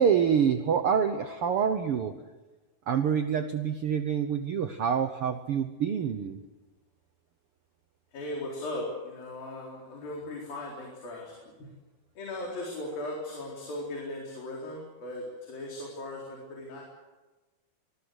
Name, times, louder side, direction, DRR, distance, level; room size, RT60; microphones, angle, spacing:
voice 1, 0.0-2.1 2.9-6.4, right 7 dB, 80° right, 8 dB, 1.2 m, -26 dB
voice 2, 8.1-11.3 12.2-16.8, left 1 dB, 75° left, -2 dB, 5.8 m, -38 dB
25.0 x 20.0 x 8.1 m, 1.2 s
omnidirectional pair, 4.1 m